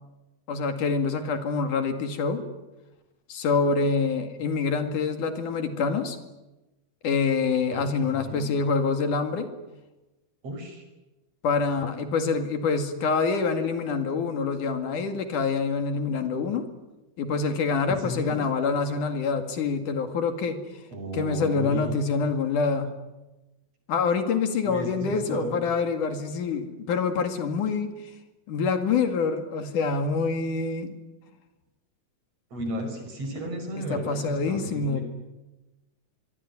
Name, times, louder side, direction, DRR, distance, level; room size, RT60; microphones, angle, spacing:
voice 1, 0.5-2.4 3.3-6.2 7.0-9.5 11.4-16.7 17.2-20.6 21.1-22.9 23.9-27.9 28.5-30.9 33.8-35.0, left 4 dB, 70° left, 7 dB, 3.7 m, -26 dB
voice 2, 7.7-8.5 10.4-10.8 17.9-18.4 20.9-21.9 24.6-25.6 32.5-35.0, equal, 50° right, 5 dB, 6.8 m, -34 dB
25.0 x 23.0 x 9.8 m, 1.1 s
omnidirectional pair, 3.7 m